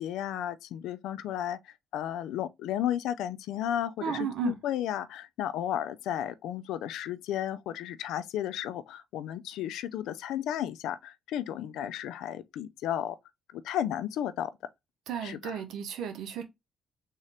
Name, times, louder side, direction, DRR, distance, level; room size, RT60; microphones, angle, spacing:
voice 1, 0.0-13.2 13.5-14.5 15.2-15.6, left 11 dB, 90° left, 0.4 m, -33 dB
voice 2, 4.0-4.5 15.1-16.4, right 8 dB, 80° right, 0.8 m, -34 dB
3.7 x 2.7 x 3.2 m
cardioid pair, 90°, 0 cm